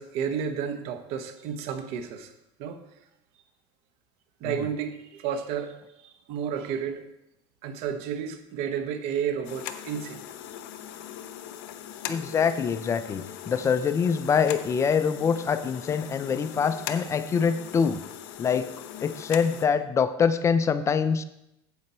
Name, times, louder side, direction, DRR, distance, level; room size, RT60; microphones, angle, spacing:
voice 1, 0.0-2.3 2.6-2.8 4.4-7.0 7.6-10.2, right 7 dB, 60° right, 9 dB, 1.1 m, -32 dB
sound 1, 9.4-19.7, left 10 dB, 75° left, 0.8 m, -40 dB
voice 2, 12.1-18.0 18.4-18.7 19.0-21.2, left 6 dB, 25° left, 12 dB, 0.4 m, -24 dB
9.6 x 7.7 x 4.3 m, 0.86 s
supercardioid pair, 130°, 11 cm